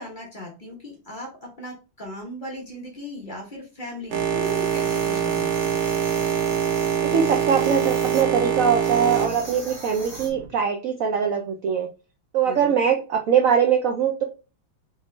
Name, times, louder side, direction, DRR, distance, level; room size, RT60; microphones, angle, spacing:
voice 1, 0.0-5.8 12.4-12.8, left 1 dB, 30° left, -1 dB, 1.0 m, -38 dB
Boat Water vehicle, 4.1-10.5, right 8 dB, 55° right, 0.8 m, -24 dB
sound 1, 4.4-8.2 8.8-10.3, right 1 dB, 10° right, 1.0 m, -41 dB
voice 2, 7.0-11.9 12.3-14.2, right 7 dB, 90° right, 3 dB, 0.7 m, -22 dB
3.7 x 3.7 x 3.1 m, 0.32 s
omnidirectional pair, 2.1 m